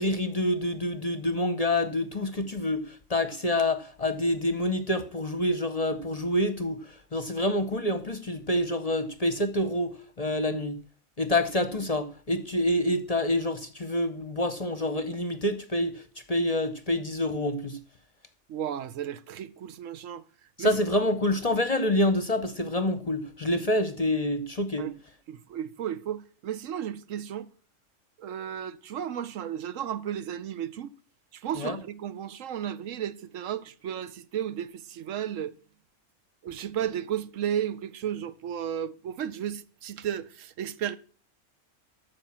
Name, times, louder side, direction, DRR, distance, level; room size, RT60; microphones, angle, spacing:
voice 1, 0.0-10.8 11.2-16.0 16.3-17.8 20.6-24.9 31.6-31.8, left 1 dB, 35° left, 0.8 m, -27 dB
voice 2, 18.5-20.2 20.6-20.8 24.8-24.9 25.3-27.5 28.2-30.9 31.3-35.5 36.4-41.0, right 9 dB, 75° right, 1.1 m, -34 dB
13.5 x 5.1 x 7.3 m
omnidirectional pair, 1.4 m